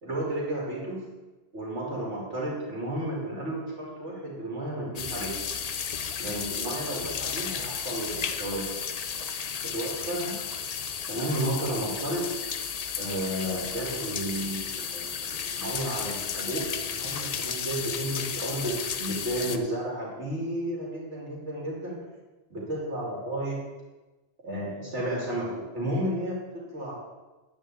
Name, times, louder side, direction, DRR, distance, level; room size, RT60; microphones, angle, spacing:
voice 1, 0.0-1.0 1.5-5.5 6.2-8.8 9.6-10.4 11.1-12.2 13.0-22.0 22.5-23.6 24.4-26.9, right 1 dB, 85° right, -4 dB, 3.0 m, -32 dB
sound 1, 5.0-19.6, left 7 dB, 45° left, 0.5 m, -33 dB
10.5 x 5.0 x 7.9 m, 1.2 s
omnidirectional pair, 1.2 m